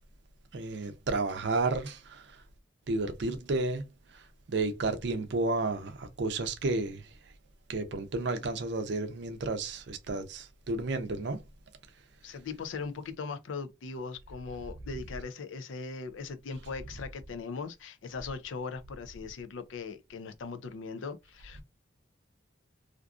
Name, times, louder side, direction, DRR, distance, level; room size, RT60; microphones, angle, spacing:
voice 1, 0.5-2.3 2.9-3.9 4.1-4.2 4.5-7.1 7.7-11.4, right 3 dB, 60° right, 0.5 m, -32 dB
voice 2, 12.2-21.6, left 4 dB, 75° left, 0.4 m, -39 dB
2.5 x 2.4 x 2.3 m
head